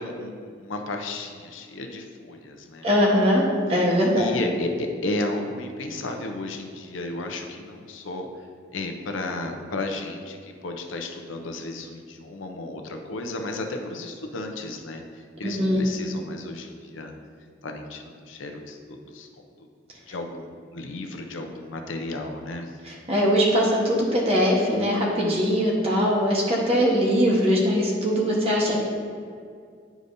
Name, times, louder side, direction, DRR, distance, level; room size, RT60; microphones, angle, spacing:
voice 1, 0.0-2.9 4.1-8.3 8.7-17.1 17.6-19.3 20.1-22.7, left 2 dB, 90° left, 4 dB, 0.7 m, -33 dB
voice 2, 2.8-3.4 3.7-4.3 15.4-15.8 22.8-28.8, equal, 30° right, -3 dB, 1.2 m, -21 dB
9.6 x 5.0 x 2.7 m, 2.2 s
head